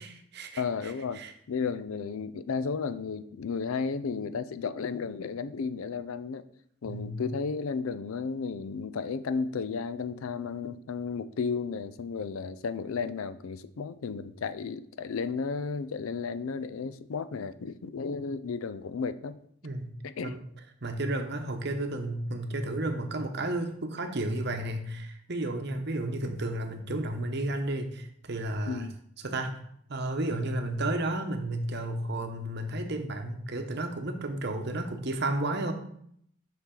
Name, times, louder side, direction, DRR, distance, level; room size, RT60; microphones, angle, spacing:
voice 1, 0.0-0.6 1.1-1.3 6.8-7.2 19.6-19.9 20.2-20.4 20.8-28.9 29.2-29.5 29.9-35.7, right 1 dB, 50° right, 6 dB, 0.9 m, -32 dB
voice 2, 0.6-1.2 1.5-6.5 6.8-19.4 20.0-20.3 28.7-28.9, left 5 dB, 70° left, 13 dB, 0.4 m, -33 dB
7.0 x 6.0 x 3.8 m, 0.66 s
head